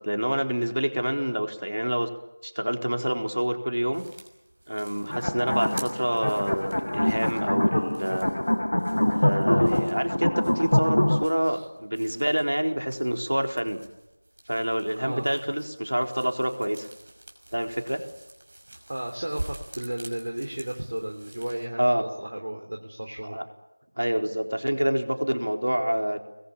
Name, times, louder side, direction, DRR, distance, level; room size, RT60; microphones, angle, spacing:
voice 1, 0.0-2.1 2.4-4.0 4.7-8.3 9.1-13.8 14.5-16.9 17.5-18.0 21.8-22.0 23.3-23.4 24.0-26.2, equal, 80° right, 4 dB, 4.2 m, -27 dB
sound 1, 3.9-21.7, right 1 dB, 40° right, 5.9 m, -46 dB
sound 2, 5.1-11.3, left 1 dB, 65° left, 1.2 m, -24 dB
voice 2, 18.9-23.4, right 1 dB, 55° right, 3 dB, 3.3 m, -34 dB
28.0 x 21.5 x 8.7 m, 0.98 s
figure-of-eight pair, 175°, 0 cm